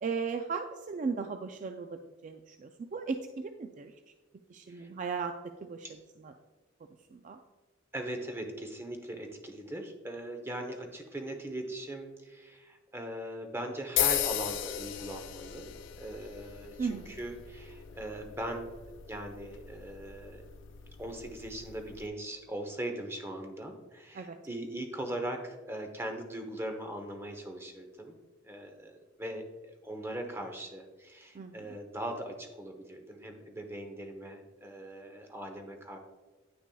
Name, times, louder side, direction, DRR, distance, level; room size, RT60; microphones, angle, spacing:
voice 1, 0.0-3.9 4.5-5.3 5.6-6.0 6.2-6.3 7.1-7.4 16.8-17.1 24.2-24.4 31.3-31.8, right 5 dB, 40° right, 7 dB, 0.3 m, -36 dB
voice 2, 7.9-15.7 16.0-18.7 19.1-20.5 21.0-28.1 28.4-36.0, right 1 dB, 15° right, 4 dB, 0.8 m, -40 dB
sound 1, 14.0-22.1, left 10 dB, 70° left, 0.5 m, -37 dB
9.7 x 6.0 x 2.3 m, 1.2 s
head